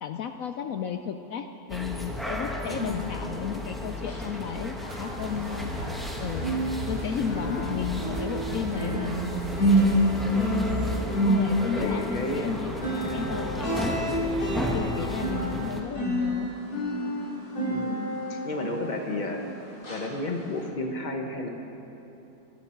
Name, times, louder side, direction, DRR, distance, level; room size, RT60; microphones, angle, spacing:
voice 1, 0.0-9.1 11.3-12.7 13.1-14.0 14.4-16.5, left 7 dB, 70° left, 7 dB, 0.8 m, -34 dB
sound 1, 1.7-15.8, left 1 dB, ahead, 0.9 m, -34 dB
voice 2, 2.7-3.1 10.2-10.7 11.8-12.6 13.0-13.2 17.7-19.4 19.9-21.5, left 2 dB, 30° left, 3 dB, 1.2 m, -32 dB
sound 2, 3.9-6.1 6.3-19.5 19.8-20.1 20.6-20.7, equal, 90° left, 4.8 m, -29 dB
sound 3, 5.2-11.0, equal, 75° right, 2.3 m, -36 dB
21.5 x 11.5 x 4.5 m, 2.9 s
omnidirectional pair, 1.9 m